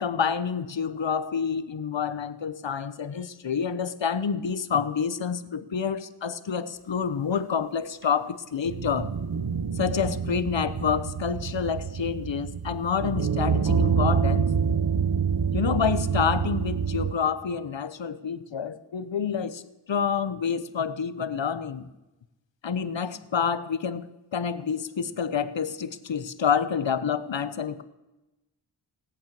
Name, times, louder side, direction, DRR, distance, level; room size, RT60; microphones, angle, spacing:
voice 1, 0.0-9.1 9.7-14.5 15.5-19.6 19.9-21.9 22.6-24.1 24.3-27.8, left 6 dB, 75° left, 14 dB, 0.9 m, -28 dB
sound 1, 8.7-17.1, right 6 dB, 50° right, 0.9 m, -27 dB
17.5 x 8.9 x 7.5 m, 1.0 s
wide cardioid pair, 55°, 45 cm